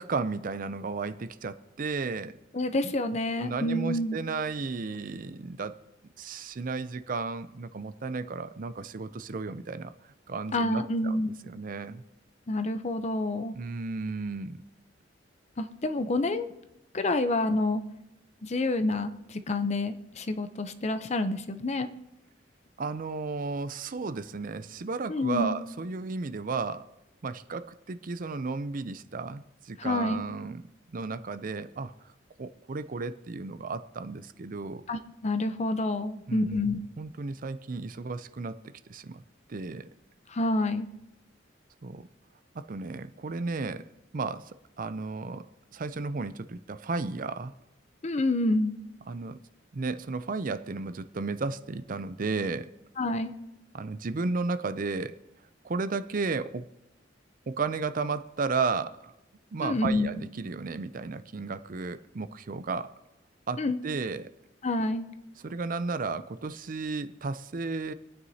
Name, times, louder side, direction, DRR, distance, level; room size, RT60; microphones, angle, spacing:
voice 1, 0.0-2.4 3.4-5.8 6.2-9.9 10.3-12.0 13.5-14.6 22.8-26.9 27.2-30.6 30.9-31.9 32.4-34.8 36.3-36.7 37.0-39.2 39.5-39.9 41.8-42.1 42.5-43.9 44.1-47.5 49.1-49.4 49.7-52.7 53.7-55.2 55.6-56.7 57.5-59.1 59.5-62.9 63.5-64.3 65.4-67.9, right 4 dB, 45° right, 13 dB, 0.5 m, -33 dB
voice 2, 2.5-4.2 10.5-11.3 12.5-13.5 15.6-16.5 16.9-17.8 18.4-21.9 25.1-25.5 29.8-30.2 34.9-36.8 40.3-40.9 48.0-48.8 53.0-53.4 59.6-60.1 63.6-63.8 64.6-65.1, left 2 dB, 35° left, 10 dB, 0.6 m, -28 dB
26.0 x 9.5 x 2.8 m, 0.91 s
head